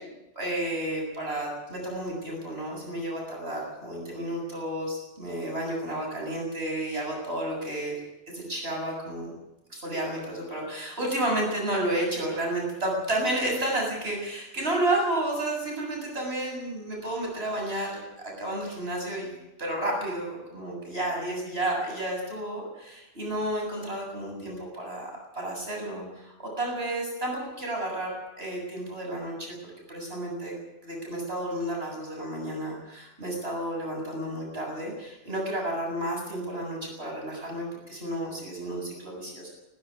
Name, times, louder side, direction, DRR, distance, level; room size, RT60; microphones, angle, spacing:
voice 1, 0.0-7.9 8.3-9.3 9.7-29.5 29.9-30.5 30.8-39.5, right 1 dB, 60° right, 0 dB, 8.2 m, -31 dB
18.5 x 16.0 x 9.9 m, 0.93 s
omnidirectional pair, 1.2 m